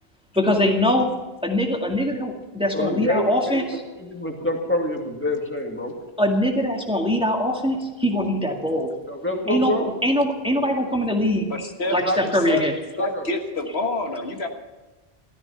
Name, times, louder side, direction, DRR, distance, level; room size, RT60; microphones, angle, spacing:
voice 1, 0.4-1.1 1.4-3.8 6.2-8.9 9.5-11.5 11.9-12.7, left 1 dB, 5° right, 1 dB, 1.9 m, -22 dB
voice 2, 2.7-3.6 4.0-5.9 9.1-9.9 12.0-12.2 13.0-13.3, left 1 dB, 10° left, 1 dB, 2.3 m, -26 dB
voice 3, 11.5-12.6 13.0-14.5, left 2 dB, 85° left, 4 dB, 1.8 m, -27 dB
15.0 x 13.0 x 5.7 m, 1.2 s
omnidirectional pair, 1.1 m